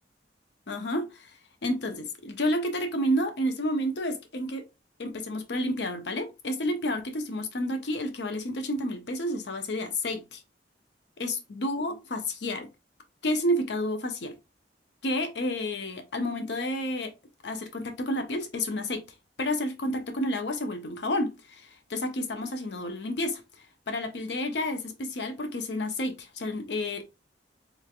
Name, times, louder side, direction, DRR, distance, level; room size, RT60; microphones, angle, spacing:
voice 1, 0.7-1.3 1.6-4.7 5.0-10.4 11.2-12.7 13.2-14.3 15.0-17.1 17.4-19.0 19.4-23.4 23.9-27.0, left 1 dB, 65° left, 0.7 m, -30 dB
3.2 x 3.2 x 2.4 m
head